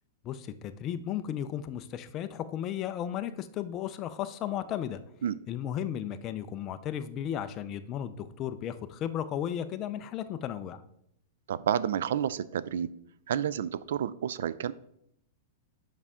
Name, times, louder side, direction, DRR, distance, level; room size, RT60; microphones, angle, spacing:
voice 1, 0.2-5.0 5.5-10.8, left 10 dB, 25° left, 10 dB, 0.4 m, -34 dB
voice 2, 11.5-12.9 13.3-14.7, right 9 dB, 75° right, 17 dB, 0.3 m, -30 dB
7.4 x 5.4 x 3.6 m, 0.73 s
supercardioid pair, 170°, 0 cm